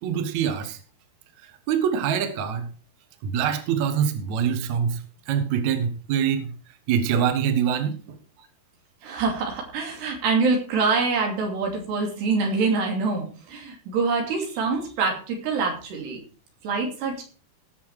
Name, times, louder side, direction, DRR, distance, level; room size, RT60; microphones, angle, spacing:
voice 1, 0.0-0.8 1.7-2.7 3.2-6.5 6.9-8.2, right 8 dB, 55° right, 7 dB, 2.3 m, -24 dB
voice 2, 9.0-16.2 16.6-17.2, right 4 dB, 85° right, 2 dB, 5.0 m, -25 dB
17.5 x 7.0 x 4.8 m, 0.38 s
omnidirectional pair, 4.7 m